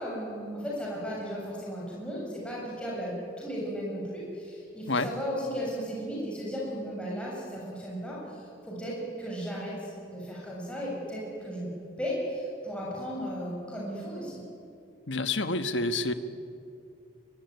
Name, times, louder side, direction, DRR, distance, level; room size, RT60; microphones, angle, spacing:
voice 1, 0.0-11.7 12.0-14.4, equal, 5° left, -5 dB, 7.3 m, -35 dB
voice 2, 15.1-16.1, left 2 dB, 80° left, 10 dB, 1.5 m, -28 dB
24.0 x 23.0 x 9.7 m, 2.5 s
head